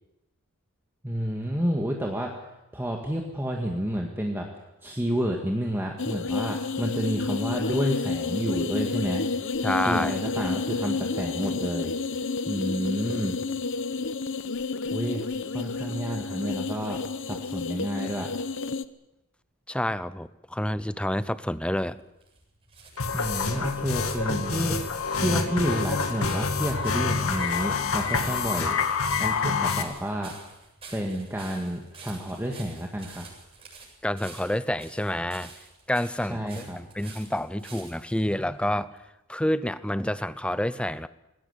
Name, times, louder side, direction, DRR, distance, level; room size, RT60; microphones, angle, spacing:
voice 1, 1.0-2.3 2.7-4.5 4.8-9.3 9.9-13.4 14.9-15.3 15.5-18.3 23.1-24.8 25.2-28.8 29.2-30.3 30.9-33.2 36.3-36.8, equal, 10° right, 0 dB, 1.9 m, -30 dB
sound 1, 6.0-18.8, left 4 dB, 60° left, 0.9 m, -30 dB
voice 2, 9.6-10.2 19.7-22.0 34.0-35.5 35.9-38.9 39.3-41.1, left 1 dB, 5° left, 15 dB, 0.7 m, -28 dB
sound 2, 21.7-38.2 39.0-39.1, right 4 dB, 25° right, 7.7 m, -49 dB
sound 3, 23.0-29.8, left 5 dB, 80° left, 2.2 m, -27 dB
20.0 x 17.5 x 9.7 m, 0.92 s
head